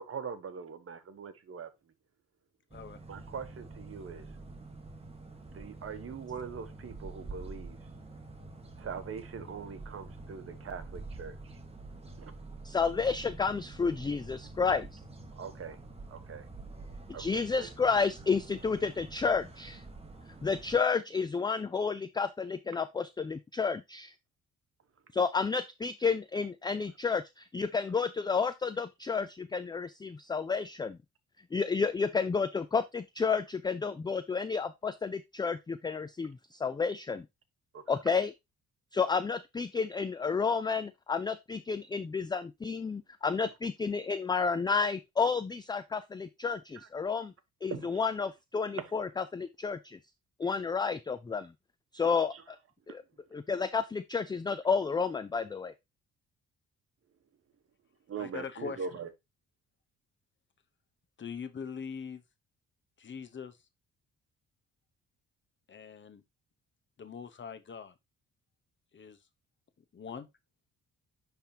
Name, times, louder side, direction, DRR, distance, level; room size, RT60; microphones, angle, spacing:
voice 1, 0.0-1.7 3.1-4.3 5.5-7.8 8.8-11.6 12.2-12.3 15.4-15.8 16.1-16.5 17.1-17.7 37.7-37.8 46.7-46.9 47.7-47.9 48.7-48.9 52.3-52.4 52.9-53.0 58.1-59.1, right 6 dB, 50° right, 1.2 m, -42 dB
sound 1, 2.7-20.8, right 3 dB, 20° right, 1.5 m, -47 dB
voice 2, 12.6-15.0 17.1-19.8 20.4-24.1 25.1-31.0 31.5-37.2 37.9-38.3 38.9-47.3 47.6-50.0 50.4-51.5 51.9-52.6 52.9-53.0 53.3-55.7, left 5 dB, 15° left, 0.3 m, -31 dB
voice 3, 58.2-58.9 61.2-62.2 63.0-63.6 65.7-66.2 67.0-67.9 68.9-69.2 69.9-70.3, left 6 dB, 40° left, 1.0 m, -42 dB
10.0 x 3.6 x 2.8 m
cardioid pair, 90°, 30 cm